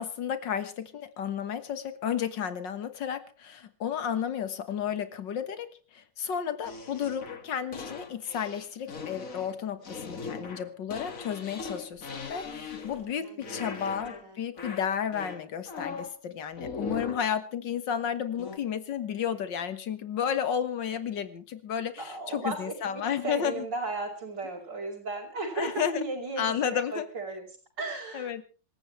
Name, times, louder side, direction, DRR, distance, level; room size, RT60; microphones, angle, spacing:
voice 1, 0.0-22.0 22.3-23.5 25.6-26.0 26.4-27.1 28.1-28.4, left 8 dB, 90° left, 11 dB, 2.1 m, -32 dB
sound 1, 6.6-13.1 13.4-14.3 14.6-16.2 16.6-17.3 18.4-18.6, left 4 dB, 50° left, 2.2 m, -40 dB
voice 2, 12.4-14.5 22.0-28.3, right 2 dB, 85° right, -6 dB, 5.4 m, -36 dB
26.5 x 14.5 x 3.2 m, 0.36 s
omnidirectional pair, 1.9 m